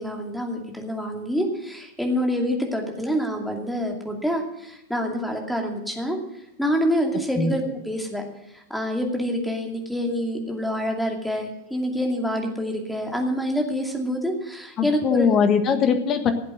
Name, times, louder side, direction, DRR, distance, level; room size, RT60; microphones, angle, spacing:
voice 1, 0.0-6.2 6.6-8.2 8.5-15.3, equal, ahead, 1 dB, 2.5 m, -26 dB
voice 2, 14.8-16.3, left 6 dB, 30° left, 8 dB, 1.5 m, -21 dB
15.5 x 8.2 x 7.7 m, 0.87 s
figure-of-eight pair, 90°, 0 cm